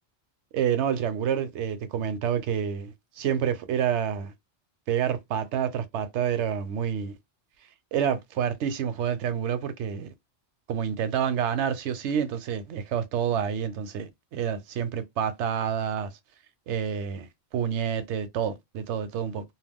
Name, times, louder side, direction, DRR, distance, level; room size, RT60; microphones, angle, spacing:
voice 1, 0.5-4.3 4.9-7.1 7.9-10.1 10.7-16.1 16.7-19.4, right 8 dB, 80° right, 0.9 m, -28 dB
2.3 x 2.2 x 3.4 m
omnidirectional pair, 1.2 m